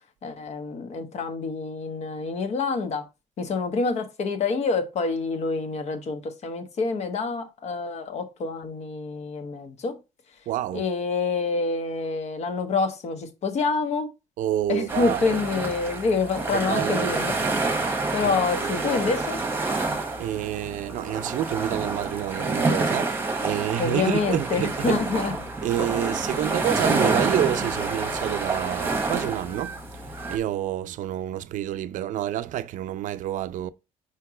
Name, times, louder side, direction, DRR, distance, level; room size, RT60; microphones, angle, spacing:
voice 1, 0.2-3.0 3.4-10.0 10.7-14.1 14.7-17.4 18.1-19.4 23.8-25.3, left 4 dB, 55° left, 1.2 m, -27 dB
voice 2, 10.5-10.9 14.4-15.4 16.5-17.1 18.2-18.3 18.6-18.8 20.2-25.0 25.6-33.7, right 12 dB, 70° right, 0.4 m, -28 dB
sound 1, 14.9-30.4, right 3 dB, 15° right, 1.1 m, -28 dB
4.5 x 4.5 x 4.8 m
cardioid pair, 145°, 14 cm